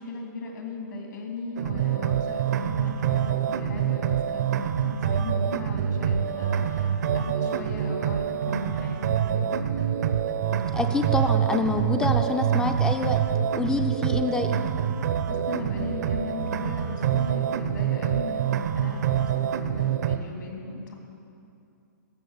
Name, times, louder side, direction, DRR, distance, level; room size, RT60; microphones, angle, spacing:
voice 1, 0.0-9.6 15.3-20.9, left 3 dB, 80° left, 1 dB, 3.0 m, -38 dB
sound 1, 1.6-20.2, right 9 dB, 60° right, 0.7 m, -26 dB
voice 2, 10.7-13.2 13.5-14.6, left 3 dB, 5° left, 6 dB, 0.4 m, -27 dB
14.0 x 6.4 x 8.3 m, 2.6 s
hypercardioid pair, 150°, 10 cm